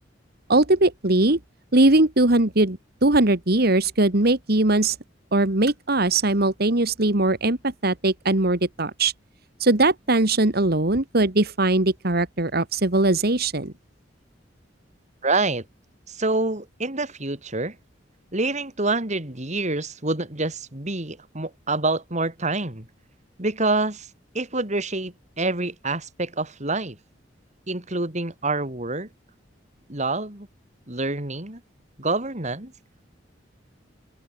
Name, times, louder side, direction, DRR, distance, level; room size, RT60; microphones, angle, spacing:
voice 1, 0.5-1.4 1.7-5.0 5.3-9.1 9.6-13.7, right 2 dB, 55° right, 2.0 m, -20 dB
voice 2, 15.2-15.6 16.1-17.8 18.3-22.9 23.4-24.1 24.3-27.0 27.7-29.1 29.9-30.5 30.9-31.6 32.0-32.7, right 2 dB, 40° right, 3.9 m, -27 dB
open air
head